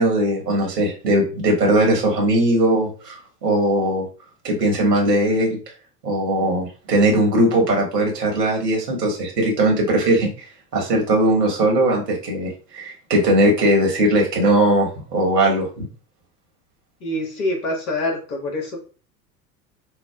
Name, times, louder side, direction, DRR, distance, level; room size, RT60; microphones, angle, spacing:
voice 1, 0.0-4.1 4.4-5.6 6.0-10.3 10.7-15.8, right 1 dB, 75° right, 0 dB, 1.4 m, -19 dB
voice 2, 17.0-18.8, left 1 dB, 60° left, 1 dB, 1.5 m, -25 dB
6.2 x 2.1 x 2.3 m, 0.37 s
figure-of-eight pair, 80°, 49 cm